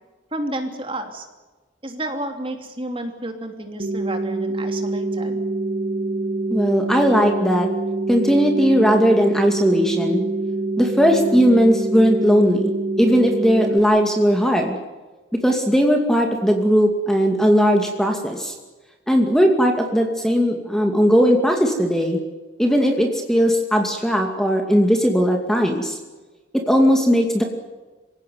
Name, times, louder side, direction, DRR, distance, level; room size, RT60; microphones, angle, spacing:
voice 1, 0.3-1.3 1.8-5.4, right 1 dB, 30° right, 5 dB, 3.0 m, -31 dB
sound 1, 3.8-13.8, right 2 dB, 65° right, 2.3 m, -25 dB
voice 2, 6.5-7.7 8.1-10.2 10.8-12.7 13.0-14.8 15.3-18.5 19.1-22.2 22.6-26.0 26.5-27.4, equal, ahead, 3 dB, 2.4 m, -18 dB
26.5 x 17.0 x 9.4 m, 1.2 s
head